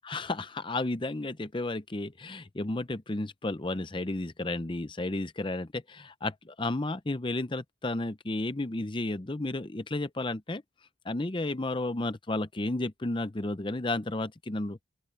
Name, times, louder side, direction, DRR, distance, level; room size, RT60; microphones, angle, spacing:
voice 1, 0.0-10.6 11.1-14.8, left 2 dB, 25° left, 0.7 m, -32 dB
open air
head